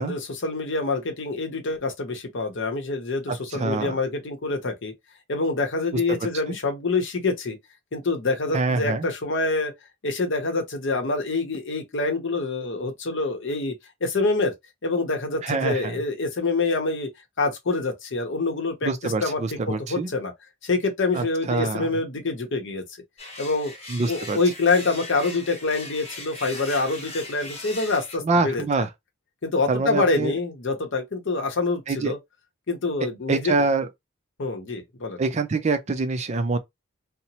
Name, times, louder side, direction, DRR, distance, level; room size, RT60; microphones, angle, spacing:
voice 1, 0.0-4.9 5.3-7.6 7.9-9.7 10.0-13.7 14.0-14.5 14.8-17.1 17.4-19.4 19.7-20.3 20.6-22.8 23.4-23.7 24.1-28.6 29.4-32.2 32.7-33.5 34.4-35.2, left 3 dB, 60° left, 0.7 m, -26 dB
voice 2, 3.3-4.0 6.5-6.6 8.5-9.1 15.4-16.0 18.8-20.1 21.1-21.9 23.9-24.4 28.2-28.9 29.7-30.3 31.9-32.2 33.3-33.9 35.2-36.6, right 3 dB, 35° right, 0.4 m, -25 dB
sound 1, 23.2-28.2, left 2 dB, 30° left, 0.8 m, -39 dB
2.9 x 2.0 x 2.7 m
head